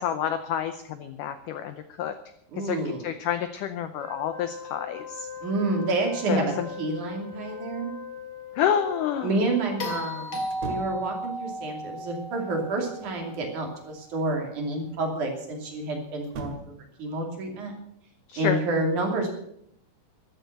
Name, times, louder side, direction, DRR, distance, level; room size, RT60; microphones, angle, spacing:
voice 1, 0.0-2.1 2.6-2.8 3.0-5.3 6.3-6.7 8.6-9.3 18.3-18.6, left 9 dB, 90° left, 11 dB, 1.8 m, -28 dB
voice 2, 2.5-3.1 5.4-7.9 9.2-17.7 18.4-19.3, right 2 dB, 50° right, 2 dB, 3.9 m, -29 dB
Wind instrument woodwind instrument, 3.9-10.3, left 7 dB, 50° left, 6.9 m, -41 dB
sound 1, 9.8-14.1 16.3-16.4, equal, 35° left, 2.7 m, -35 dB
sound 2, 10.5-11.1 12.7-13.6 16.2-16.8, right 3 dB, 70° right, 3.8 m, -39 dB
14.0 x 12.5 x 6.7 m, 0.71 s
omnidirectional pair, 4.8 m